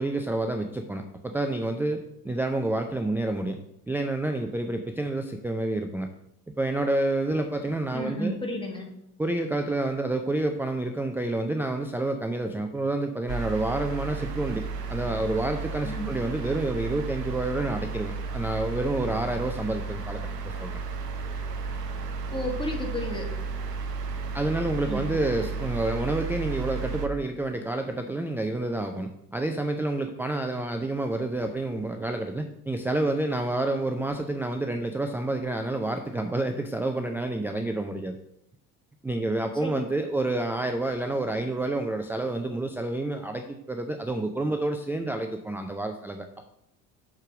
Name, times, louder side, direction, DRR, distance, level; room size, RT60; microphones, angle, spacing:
voice 1, 0.0-3.6 3.9-6.1 6.6-8.4 9.2-14.6 14.9-20.8 24.3-38.2 39.0-46.5, right 2 dB, 5° right, 5 dB, 0.5 m, -29 dB
voice 2, 7.9-8.9 15.8-16.1 22.3-23.3 24.9-25.1 39.6-39.8, left 1 dB, 10° left, 0 dB, 2.1 m, -32 dB
sound 1, 13.3-27.1, right 4 dB, 90° right, 0.8 m, -33 dB
6.5 x 4.8 x 6.0 m, 0.80 s
hypercardioid pair, 65°, 47 cm